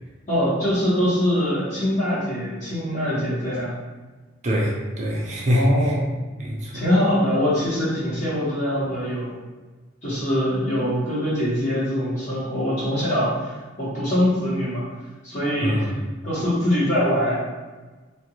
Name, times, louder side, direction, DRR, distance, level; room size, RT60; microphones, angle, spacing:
voice 1, 0.3-3.7 5.5-6.1 6.7-9.3 10.0-13.5 13.8-14.8 15.2-15.9 16.2-17.4, equal, 35° left, -10 dB, 1.3 m, -23 dB
voice 2, 4.4-5.9 6.4-6.8 15.6-15.9, equal, 35° right, -3 dB, 0.5 m, -23 dB
2.6 x 2.5 x 2.9 m, 1.3 s
head